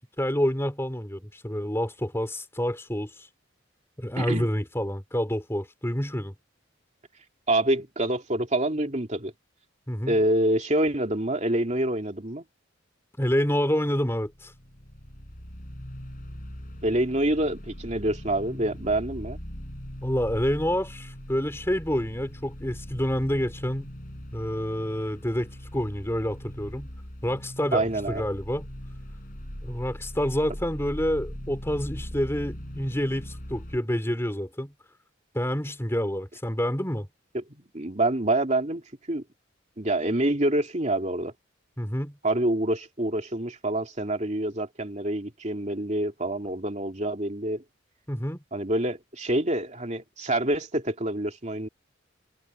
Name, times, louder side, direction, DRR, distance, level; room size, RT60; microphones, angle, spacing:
voice 1, 0.0-3.3 4.0-6.3 9.9-10.2 13.2-14.5 20.0-23.9 24.3-26.9 27.2-28.7 29.6-34.7 35.3-37.1 41.8-42.2 48.1-48.4, equal, 15° left, 3.3 m, -28 dB
voice 2, 4.2-4.5 7.5-9.3 10.1-12.4 16.8-19.4 27.7-28.2 37.3-37.4 37.7-38.8 39.1-39.2 39.8-41.3 42.2-47.6 48.5-51.7, right 1 dB, 35° right, 2.8 m, -26 dB
sound 1, 14.3-33.8, equal, 45° left, 4.9 m, -40 dB
head